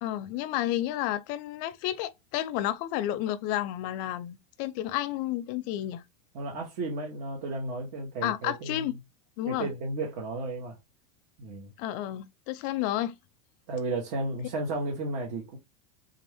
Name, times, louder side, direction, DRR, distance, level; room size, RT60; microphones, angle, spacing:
voice 1, 0.0-6.0 8.2-8.9 9.4-9.7 11.8-13.2, left 13 dB, 45° left, 0.4 m, -31 dB
voice 2, 6.3-8.9 9.4-10.8 11.4-11.7 13.7-15.6, right 2 dB, 55° right, 1.2 m, -33 dB
3.7 x 2.6 x 3.4 m
supercardioid pair, 150°, 20 cm